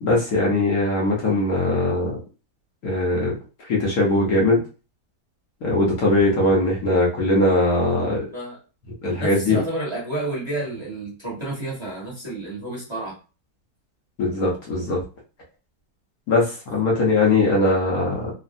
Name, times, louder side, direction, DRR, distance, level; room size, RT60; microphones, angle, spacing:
voice 1, 0.0-2.1 2.8-3.4 3.7-4.6 5.6-8.2 9.0-9.6 14.2-15.0 16.3-18.3, left 2 dB, 65° left, -3 dB, 1.3 m, -20 dB
voice 2, 9.2-13.2, right 2 dB, 20° right, -6 dB, 1.2 m, -30 dB
3.2 x 2.3 x 2.5 m, 0.34 s
omnidirectional pair, 1.8 m